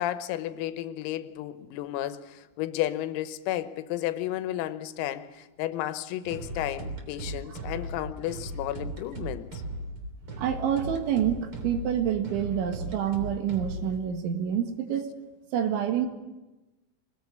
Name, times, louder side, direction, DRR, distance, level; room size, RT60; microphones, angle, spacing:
voice 1, 0.0-9.5, left 13 dB, 85° left, 11 dB, 3.8 m, -32 dB
sound 1, 6.2-14.0, right 1 dB, 30° right, 3.3 m, -37 dB
voice 2, 10.4-15.1 15.5-16.1, right 9 dB, 70° right, 6 dB, 3.8 m, -27 dB
24.5 x 20.0 x 9.5 m, 1.1 s
omnidirectional pair, 6.0 m